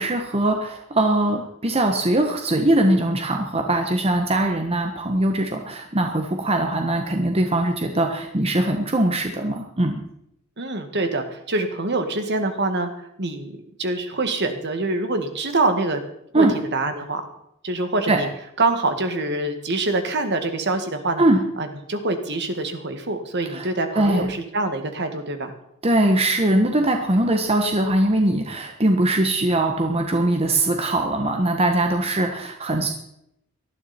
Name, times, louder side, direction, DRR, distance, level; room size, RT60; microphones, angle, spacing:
voice 1, 0.0-10.0 16.3-16.5 18.1-18.2 21.2-21.4 23.4-23.7 23.9-24.3 25.8-32.9, right 1 dB, 25° right, 4 dB, 1.3 m, -21 dB
voice 2, 10.6-16.0 16.3-16.5 16.7-17.2 17.6-18.3 18.6-21.2 21.6-25.5, right 2 dB, 50° right, 7 dB, 2.0 m, -25 dB
19.0 x 13.0 x 4.4 m, 0.77 s
head